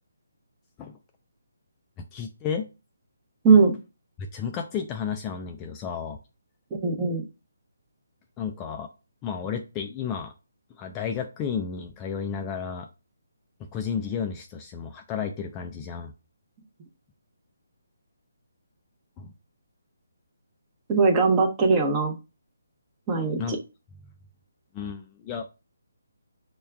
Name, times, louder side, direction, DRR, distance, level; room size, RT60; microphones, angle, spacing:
voice 1, 2.0-2.7 4.2-6.2 8.4-8.9 9.2-10.3 10.8-12.9 13.6-16.1 19.2-19.3 23.4-23.5 24.7-25.5, left 7 dB, 20° left, 4 dB, 0.3 m, -32 dB
voice 2, 3.4-3.7 6.8-7.2 20.9-22.1 23.1-23.6, right 4 dB, 20° right, 3 dB, 0.7 m, -20 dB
5.4 x 2.2 x 2.2 m, 0.29 s
figure-of-eight pair, 150°, 0 cm